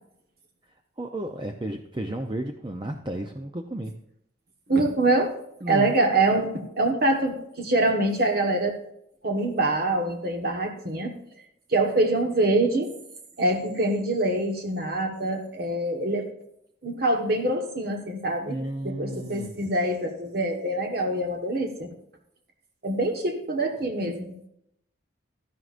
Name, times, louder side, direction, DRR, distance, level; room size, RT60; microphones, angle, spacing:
voice 1, 1.0-3.9 5.6-5.9 18.5-19.7, right 1 dB, 25° right, 4 dB, 0.6 m, -33 dB
voice 2, 4.7-5.3 5.7-8.8 9.2-11.1 11.7-12.9 13.4-16.3 16.8-21.9 22.8-24.3, right 2 dB, 50° right, 3 dB, 1.3 m, -25 dB
13.0 x 11.0 x 2.5 m, 0.76 s
head